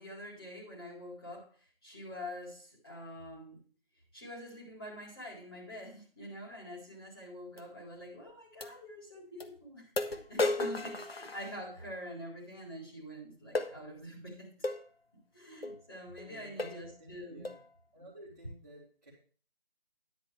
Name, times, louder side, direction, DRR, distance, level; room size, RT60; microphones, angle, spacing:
voice 1, 0.0-3.6 4.1-14.5 15.3-17.4, equal, 25° left, -5 dB, 4.0 m, -46 dB
sound 1, 7.6-7.7 8.6-8.7 9.4-9.5 10.0-11.9 13.6-13.8 14.6-14.8 15.6-15.8 16.2-16.3 16.6-16.9 17.5-17.7, left 2 dB, 85° left, 1.4 m, -34 dB
voice 2, 16.2-17.6 17.9-19.1, equal, 20° right, -9 dB, 2.8 m, -53 dB
10.5 x 10.0 x 3.4 m, 0.42 s
figure-of-eight pair, 180°, 30 cm